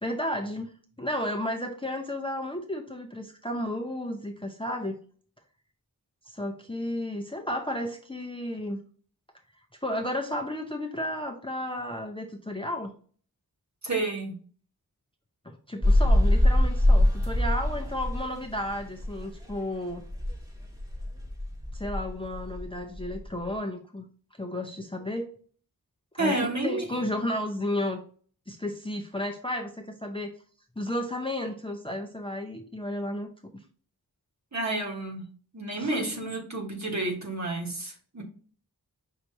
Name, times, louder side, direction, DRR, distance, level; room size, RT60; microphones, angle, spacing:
voice 1, 0.0-0.7 1.0-5.0 6.3-8.8 9.8-12.9 15.4-20.1 21.7-24.1 24.4-25.3 26.1-28.0 28.5-30.3 30.8-33.6 35.8-36.2, left 1 dB, 15° left, 3 dB, 0.6 m, -33 dB
voice 2, 13.8-14.3 26.2-26.9 34.5-35.2 35.5-38.2, right 2 dB, 45° right, 0 dB, 1.3 m, -30 dB
sound 1, 15.8-19.7 19.9-23.4, left 1 dB, 10° right, 1.1 m, -24 dB
5.7 x 3.1 x 2.6 m, 0.43 s
wide cardioid pair, 50°, 38 cm